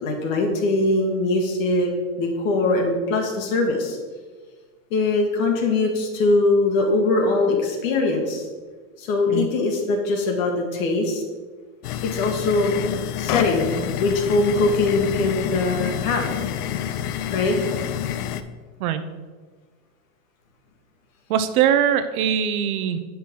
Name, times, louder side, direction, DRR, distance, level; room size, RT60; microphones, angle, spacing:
voice 1, 0.0-1.9 2.2-4.0 4.9-8.5 9.0-11.2 12.0-12.8 13.1-16.3 17.3-17.6, left 2 dB, 60° left, 1 dB, 1.6 m, -22 dB
sound 1, 11.8-18.4, left 10 dB, 85° left, 0.7 m, -28 dB
voice 2, 21.3-23.0, right 9 dB, 70° right, 10 dB, 0.8 m, -21 dB
8.6 x 6.0 x 3.7 m, 1.4 s
supercardioid pair, 155°, 45 cm